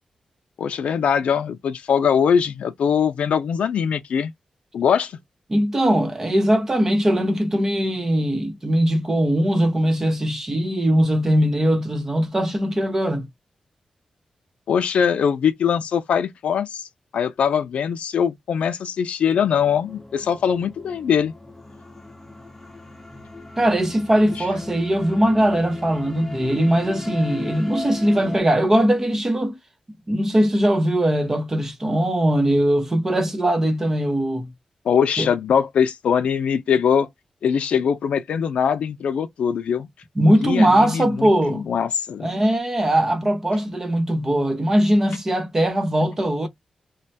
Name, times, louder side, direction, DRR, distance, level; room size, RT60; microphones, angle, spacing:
voice 1, 0.6-4.3 4.7-5.2 14.7-16.9 17.1-21.3 34.9-37.1 37.4-39.9 40.4-41.3 41.7-42.3, left 7 dB, 90° left, 0.4 m, -21 dB
voice 2, 5.5-13.3 23.6-29.6 30.1-34.5 35.2-35.3 40.2-41.7 42.2-46.5, right 1 dB, 20° right, 0.8 m, -20 dB
sound 1, 19.3-28.4, left 2 dB, 10° left, 0.7 m, -38 dB
3.2 x 2.2 x 2.7 m
wide cardioid pair, 145°, 2 cm